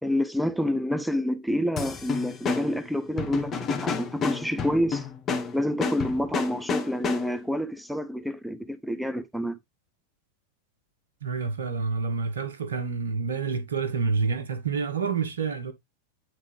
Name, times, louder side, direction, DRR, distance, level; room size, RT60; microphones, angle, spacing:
voice 1, 0.0-5.1 5.5-9.6, equal, ahead, 0.7 m, -28 dB
sound 1, 1.8-7.5, left 5 dB, 25° left, 1.4 m, -31 dB
voice 2, 11.2-15.7, right 5 dB, 65° right, 1.1 m, -28 dB
8.8 x 3.6 x 3.3 m
figure-of-eight pair, 90°, 0 cm